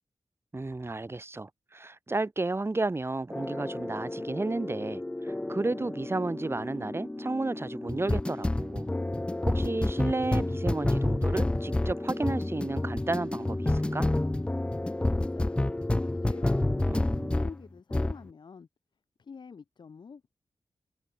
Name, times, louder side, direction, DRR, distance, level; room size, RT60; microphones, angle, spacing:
voice 1, 0.5-8.9 9.5-14.1 16.9-17.4, right 2 dB, 30° right, 3.7 m, -32 dB
sound 1, 3.3-17.6 17.9-18.2, left 1 dB, 10° left, 0.4 m, -30 dB
voice 2, 15.0-18.7 19.2-20.3, left 5 dB, 70° left, 5.9 m, -48 dB
cardioid pair, 70°, 8 cm